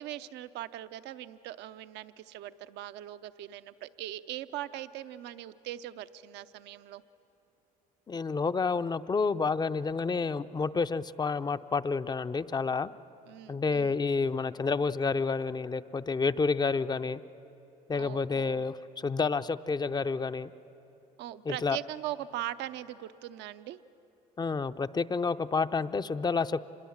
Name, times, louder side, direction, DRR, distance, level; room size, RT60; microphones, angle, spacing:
voice 1, 0.0-7.0 13.3-14.0 17.9-18.6 21.2-23.8, right 13 dB, 65° right, 12 dB, 0.8 m, -40 dB
voice 2, 8.1-12.9 13.5-17.2 17.9-20.5 21.4-21.8 24.4-26.7, left 4 dB, 20° left, 12 dB, 0.6 m, -29 dB
26.0 x 21.0 x 7.3 m, 3.0 s
hypercardioid pair, 75°, 19 cm